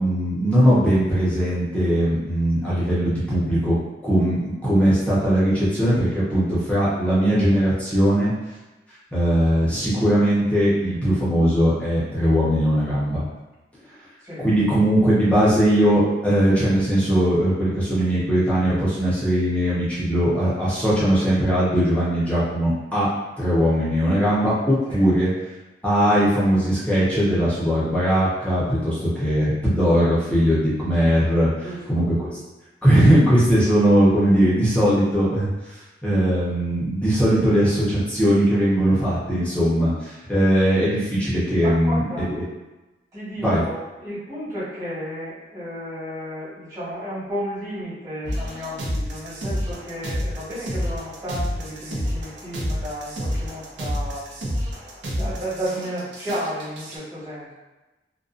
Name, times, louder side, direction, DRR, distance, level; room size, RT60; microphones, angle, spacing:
voice 1, 0.0-3.7 4.0-8.3 9.1-13.2 14.4-23.1 23.4-25.3 25.8-31.5 31.9-32.4 32.8-35.5 36.0-42.4 43.4-43.6, equal, 5° left, -9 dB, 0.7 m, -20 dB
voice 2, 31.6-32.1 41.6-42.3 43.1-54.4 55.1-57.5, equal, 20° right, -12 dB, 1.3 m, -33 dB
sound 1, 48.2-57.0, equal, 75° right, 0.5 m, -29 dB
2.6 x 2.2 x 2.4 m, 1.1 s
head